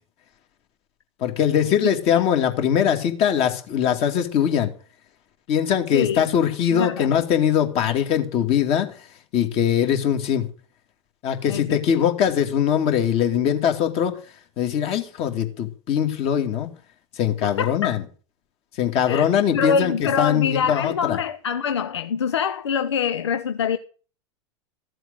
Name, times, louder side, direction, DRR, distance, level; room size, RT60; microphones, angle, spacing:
voice 1, 1.2-4.7 5.5-8.9 9.3-10.5 11.2-14.2 14.6-16.7 17.1-18.0 18.8-21.2, left 9 dB, 40° left, 2.6 m, -21 dB
voice 2, 5.9-6.2 6.7-7.1 11.5-11.8 17.6-18.0 19.1-23.8, left 7 dB, 70° left, 0.8 m, -25 dB
15.0 x 7.8 x 8.0 m
figure-of-eight pair, 90°, 15 cm